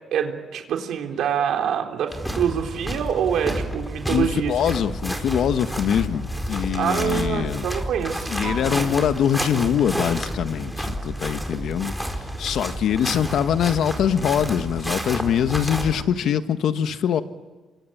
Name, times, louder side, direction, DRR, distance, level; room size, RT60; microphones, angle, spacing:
voice 1, 0.1-4.5 6.7-8.3, right 8 dB, 75° right, 3 dB, 3.8 m, -25 dB
sound 1, 2.1-16.0, equal, ahead, 4.6 m, -30 dB
voice 2, 4.1-7.6 8.3-11.9 12.4-17.2, left 8 dB, 70° left, 9 dB, 1.6 m, -23 dB
sound 2, 8.4-10.3, right 5 dB, 50° right, 4.6 m, -38 dB
27.5 x 24.0 x 8.8 m, 1.3 s
cardioid pair, 90°, 0 cm